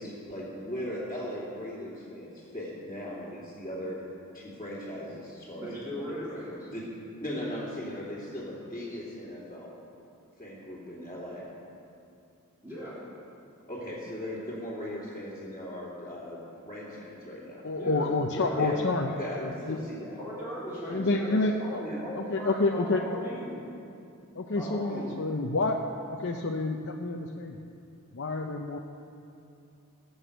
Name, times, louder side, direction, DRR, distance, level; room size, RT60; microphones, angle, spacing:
voice 1, 0.0-4.0 4.3-5.7 6.7-6.8 7.2-9.7 10.4-11.5 13.7-17.6 18.6-18.8 19.2-20.2 21.8-22.0, equal, 20° left, -10 dB, 2.9 m, -38 dB
voice 2, 5.6-6.7 12.6-12.9 17.8-18.6 20.2-23.6 24.5-25.1, equal, 10° right, -13 dB, 3.7 m, -38 dB
voice 3, 17.6-19.1 19.4-19.8 20.9-21.8 22.1-23.2 24.4-25.8 26.1-27.6 28.1-28.8, left 3 dB, 55° left, 2 dB, 0.7 m, -28 dB
18.0 x 8.2 x 6.8 m, 2.6 s
head